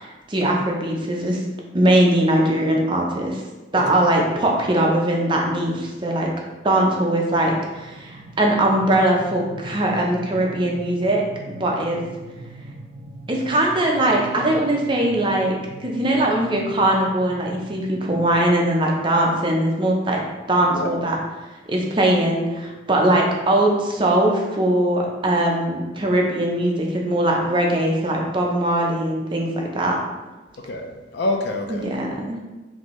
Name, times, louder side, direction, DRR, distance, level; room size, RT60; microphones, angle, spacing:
voice 1, 0.0-1.4 1.7-3.4 3.7-6.3 6.6-12.0 13.3-20.2 20.5-21.2 21.7-30.0 31.7-32.4, right 1 dB, 25° right, -1 dB, 0.6 m, -21 dB
sound 1, 7.3-18.4, right 2 dB, 85° right, 0.6 m, -41 dB
voice 2, 30.6-31.9, left 2 dB, 65° left, 4 dB, 0.5 m, -27 dB
5.3 x 2.7 x 3.1 m, 1.2 s
head